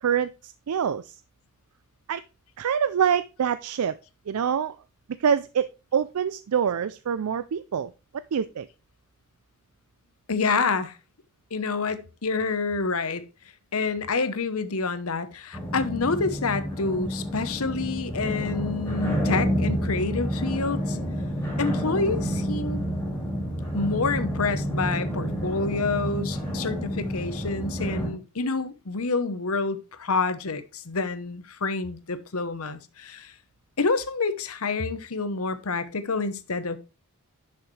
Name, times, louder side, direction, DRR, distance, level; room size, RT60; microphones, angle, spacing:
voice 1, 0.0-1.1 2.1-2.2 2.6-3.9 4.3-4.8 5.2-7.9 8.3-8.7, right 7 dB, 80° right, 0.4 m, -25 dB
voice 2, 10.3-11.0 11.5-13.2 13.7-21.0 21.6-22.8 23.7-33.3 33.8-36.8, left 4 dB, 75° left, 1.0 m, -28 dB
sound 1, 15.5-28.1, equal, 10° left, 4.2 m, -29 dB
11.0 x 6.4 x 3.2 m
head